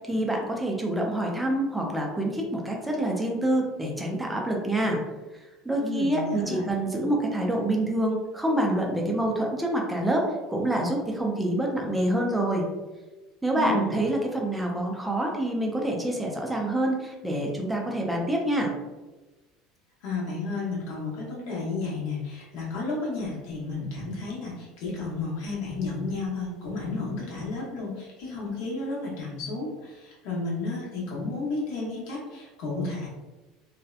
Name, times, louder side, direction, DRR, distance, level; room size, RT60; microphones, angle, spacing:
voice 1, 0.0-5.0 5.6-12.6 13.4-18.7, right 1 dB, 5° right, -1 dB, 0.4 m, -26 dB
voice 2, 5.8-6.6 13.5-13.9 20.0-33.1, left 3 dB, 70° left, -5 dB, 0.8 m, -32 dB
2.7 x 2.1 x 2.3 m, 1.2 s
cardioid pair, 155°, 0 cm